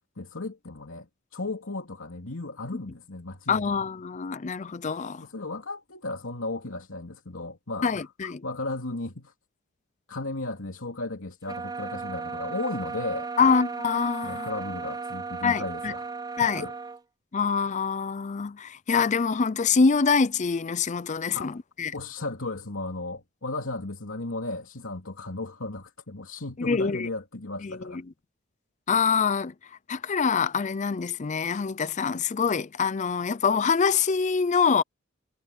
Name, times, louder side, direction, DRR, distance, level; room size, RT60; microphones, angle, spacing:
voice 1, 0.2-1.1 1.3-3.7 5.2-9.3 10.1-13.3 14.2-16.1 16.4-16.7 21.3-21.6 21.9-28.0, left 2 dB, 80° left, 2.9 m, -35 dB
voice 2, 3.5-5.2 7.8-8.4 13.4-14.5 15.4-15.9 16.4-16.6 17.3-21.9 26.6-27.1 27.6-27.9 28.9-29.5 29.9-34.8, left 5 dB, 35° left, 0.5 m, -25 dB
sound 1, 11.4-17.0, right 4 dB, 20° right, 0.7 m, -35 dB
head